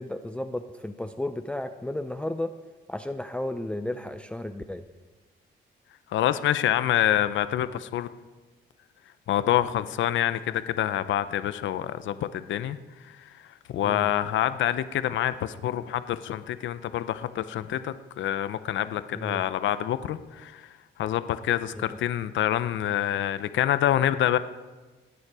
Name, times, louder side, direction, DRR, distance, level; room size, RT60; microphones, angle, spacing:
voice 1, 0.0-2.5 2.9-4.8 13.8-14.1 19.1-19.5, left 1 dB, 5° left, 9 dB, 0.6 m, -33 dB
voice 2, 6.1-8.1 9.3-12.8 13.0-13.3 13.7-20.7 21.0-24.4, left 11 dB, 70° left, 13 dB, 0.7 m, -26 dB
18.5 x 9.6 x 4.8 m, 1.3 s
cardioid pair, 90°, 20 cm